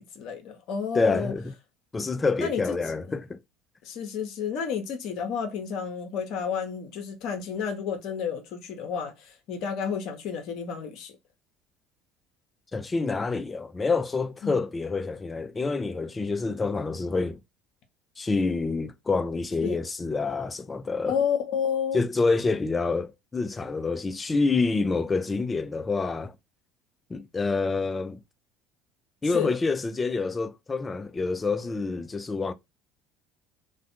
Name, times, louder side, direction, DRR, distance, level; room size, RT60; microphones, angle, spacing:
voice 1, 0.0-1.3 2.4-2.8 3.8-11.1 14.4-14.6 19.6-19.8 21.0-22.0 29.3-29.5, left 7 dB, 55° left, 0.7 m, -31 dB
voice 2, 0.9-1.5 1.9-3.4 12.7-17.4 18.2-21.2 21.9-26.4 27.1-28.2 29.2-32.5, left 4 dB, 20° left, 0.4 m, -27 dB
2.5 x 2.2 x 2.5 m
figure-of-eight pair, 65°, 0 cm